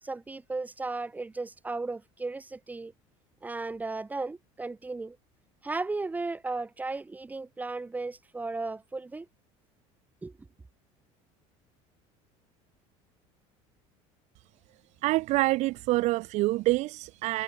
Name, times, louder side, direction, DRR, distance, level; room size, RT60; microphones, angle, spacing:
voice 1, 0.0-2.9 3.4-5.2 5.6-9.3 10.2-10.3, right 3 dB, 10° right, 2.3 m, -35 dB
voice 2, 15.0-17.4, right 19 dB, 55° right, 0.7 m, -26 dB
cardioid pair, 145°, 14 cm